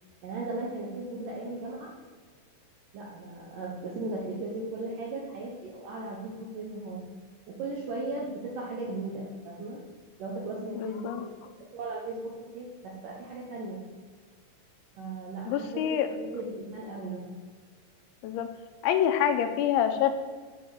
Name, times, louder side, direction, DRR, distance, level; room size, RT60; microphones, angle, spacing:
voice 1, 0.2-1.9 2.9-7.0 7.5-9.8 10.2-11.3 11.7-13.8 15.0-17.3, right 2 dB, 70° right, -2 dB, 2.0 m, -37 dB
voice 2, 10.8-11.2 15.5-16.1 18.2-18.5 18.8-20.1, left 9 dB, 90° left, 7 dB, 3.1 m, -26 dB
11.0 x 4.4 x 7.0 m, 1.6 s
omnidirectional pair, 5.4 m